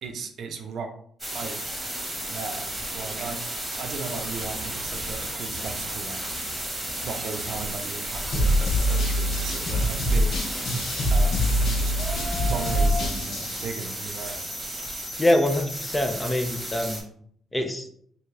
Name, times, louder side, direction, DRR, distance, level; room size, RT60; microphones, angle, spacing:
voice 1, 0.0-0.9 1.3-1.6 2.2-3.4 3.7-6.2 7.0-10.4 11.1-12.0 12.2-14.5, right 5 dB, 65° right, 5 dB, 0.6 m, -36 dB
sound 1, 1.2-17.0, right 1 dB, 15° right, 1.3 m, -33 dB
sound 2, 4.4-13.1, equal, 40° left, 1.1 m, -37 dB
sound 3, 8.3-13.6, equal, 60° left, 1.0 m, -24 dB
voice 2, 15.2-17.0 17.5-17.9, left 1 dB, 15° left, 5 dB, 0.6 m, -24 dB
3.4 x 2.8 x 3.2 m, 0.62 s
cardioid pair, 90°, 0 cm